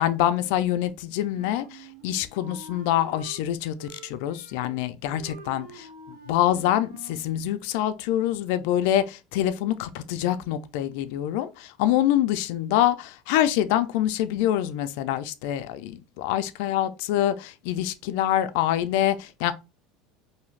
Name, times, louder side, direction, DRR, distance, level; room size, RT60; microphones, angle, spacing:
voice 1, 0.0-19.5, left 12 dB, 60° left, 0.3 m, -25 dB
Wind instrument woodwind instrument, 1.3-3.4 3.8-4.8 5.1-7.3, right 4 dB, 65° right, 0.9 m, -46 dB
2.6 x 2.4 x 3.1 m
cardioid pair, 170°, 0 cm